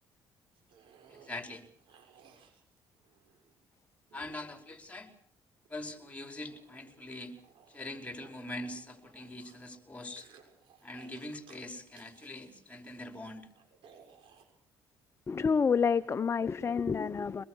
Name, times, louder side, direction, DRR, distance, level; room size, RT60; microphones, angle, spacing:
sound 1, 0.5-3.5 4.1-5.1 5.6-9.8 10.2-11.6 11.9-14.4, right 7 dB, 70° right, 6.7 m, -61 dB
voice 1, 1.1-1.6 4.1-5.1 5.7-7.3 7.7-10.3 10.8-13.5, left 1 dB, 15° left, 5.0 m, -43 dB
voice 2, 15.3-17.4, left 6 dB, 30° left, 0.9 m, -28 dB
23.5 x 21.5 x 6.5 m
cardioid pair, 95°, 9 cm